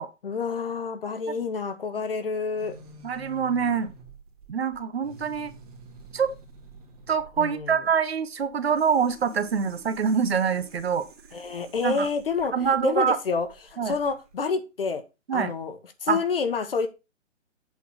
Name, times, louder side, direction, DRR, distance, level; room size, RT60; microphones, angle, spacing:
voice 1, 0.2-2.8 7.4-7.8 11.3-12.5 12.8-15.0 15.3-16.9, left 5 dB, 45° left, 1.3 m, -28 dB
sound 1, 2.6-14.4, right 2 dB, 30° right, 2.0 m, -48 dB
voice 2, 3.0-3.9 4.5-5.5 6.1-6.3 7.1-11.1 11.8-12.1 12.5-13.2 13.8-13.9 15.3-15.5 16.1-16.2, right 6 dB, 55° right, 1.0 m, -25 dB
8.4 x 3.7 x 6.4 m
hypercardioid pair, 170°, 38 cm